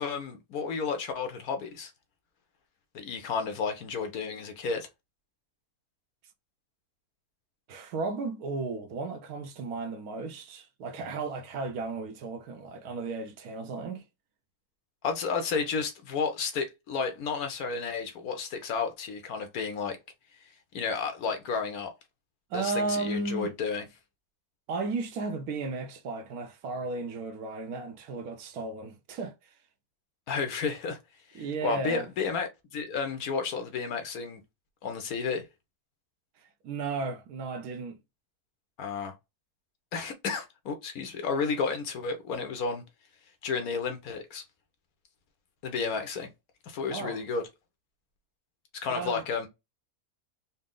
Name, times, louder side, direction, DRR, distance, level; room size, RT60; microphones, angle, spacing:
voice 1, 0.0-1.9 2.9-4.9 15.0-20.0 20.7-21.9 22.5-23.8 30.3-31.0 31.3-34.4 34.8-35.5 38.8-39.1 39.9-42.8 43.4-44.4 45.6-46.3 46.7-47.5 48.7-49.5, left 5 dB, 75° left, 1.3 m, -32 dB
voice 2, 7.7-14.1 22.5-23.5 24.7-29.4 31.3-32.1 36.6-38.0 46.9-47.2 48.9-49.2, right 3 dB, 75° right, 1.2 m, -34 dB
4.2 x 2.0 x 3.7 m
omnidirectional pair, 1.6 m